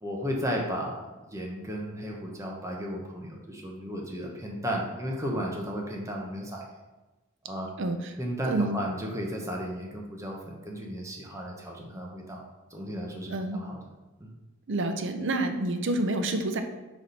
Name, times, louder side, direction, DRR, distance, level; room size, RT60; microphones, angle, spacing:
voice 1, 0.0-6.7 7.4-7.7 8.2-12.4 12.7-13.8 14.2-14.3, equal, 15° right, -1 dB, 0.9 m, -34 dB
voice 2, 7.8-8.1 8.5-8.8 13.3-13.6 14.7-16.6, right 2 dB, 60° right, 6 dB, 0.7 m, -28 dB
4.8 x 4.1 x 5.4 m, 1.1 s
head